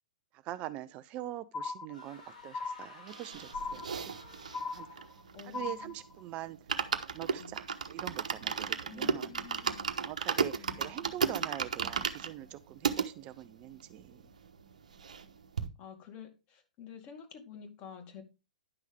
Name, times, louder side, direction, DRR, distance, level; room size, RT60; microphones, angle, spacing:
voice 1, 0.3-4.1 4.7-5.0 5.4-6.6 7.1-9.3 10.0-14.2, right 14 dB, 30° right, 0.5 m, -43 dB
sound 1, 1.5-2.2 2.5-3.2 3.5-4.2 4.5-5.2 5.5-6.2, left 4 dB, 15° left, 1.4 m, -39 dB
sound 2, 1.9-5.3, left 2 dB, 80° left, 5.5 m, -54 dB
sound 3, 3.1-5.9 6.2-6.3 6.5-13.1 13.6-13.7 13.9-14.0 14.3-15.3 15.6-15.7, right 6 dB, 65° right, 1.0 m, -34 dB
voice 2, 5.3-5.9 7.4-7.5 8.9-9.9 10.6-11.5 15.8-18.2, left 7 dB, 35° left, 2.2 m, -49 dB
10.5 x 6.3 x 3.5 m
figure-of-eight pair, 110°, 4 cm